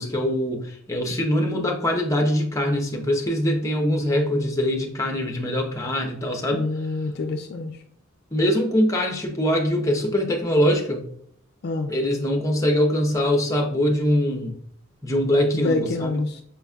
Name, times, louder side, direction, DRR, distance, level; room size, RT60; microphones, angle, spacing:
voice 1, 0.0-6.6 8.3-11.0 11.9-14.5 15.0-16.2, equal, 15° left, 2 dB, 0.7 m, -23 dB
voice 2, 6.5-7.8 11.6-11.9 15.5-16.4, left 2 dB, 50° left, 5 dB, 0.4 m, -27 dB
5.7 x 4.0 x 2.3 m, 0.67 s
head